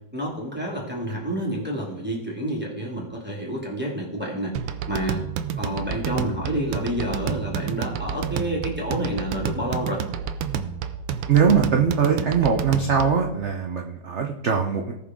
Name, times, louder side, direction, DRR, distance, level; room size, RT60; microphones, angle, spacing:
voice 1, 0.1-4.6 4.9-5.2 5.6-10.0, equal, 5° right, -3 dB, 2.3 m, -29 dB
sound 1, 4.5-13.3, right 7 dB, 80° right, 1.4 m, -30 dB
voice 2, 11.3-14.9, right 6 dB, 55° right, 2 dB, 0.8 m, -21 dB
18.0 x 6.2 x 3.7 m, 0.94 s
omnidirectional pair, 2.1 m